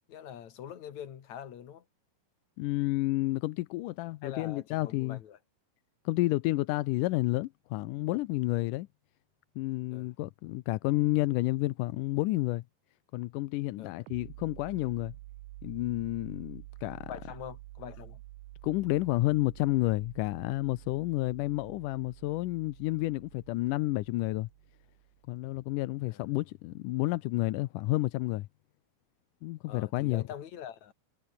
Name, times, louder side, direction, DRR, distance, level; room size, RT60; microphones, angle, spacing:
voice 1, 0.1-1.8 4.2-5.4 9.9-10.1 13.8-13.9 17.1-18.2 26.1-26.2 29.7-30.9, left 9 dB, 55° left, 3.1 m, -44 dB
voice 2, 2.6-5.2 6.1-8.9 9.6-12.6 13.1-15.2 15.6-17.1 18.6-24.5 25.3-28.5 29.4-30.2, left 18 dB, 80° left, 1.9 m, -30 dB
sound 1, 14.1-25.4, right 19 dB, 90° right, 1.8 m, -50 dB
omnidirectional pair, 4.3 m